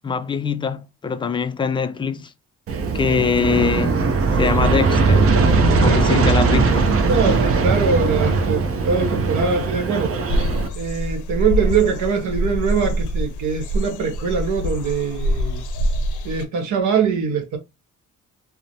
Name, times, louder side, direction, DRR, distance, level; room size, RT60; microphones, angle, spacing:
voice 1, 0.0-2.3 2.9-4.0 4.4-5.3 5.8-6.9, left 6 dB, 15° left, 0.3 m, -23 dB
Aircraft, 2.7-10.7, right 4 dB, 50° right, 0.6 m, -19 dB
voice 2, 5.8-6.2 7.1-10.2 10.7-15.6 16.2-17.6, right 5 dB, 75° right, 0.9 m, -22 dB
sound 1, 10.3-16.4, equal, 80° left, 0.6 m, -25 dB
3.0 x 2.0 x 2.6 m
cardioid pair, 90°, 30 cm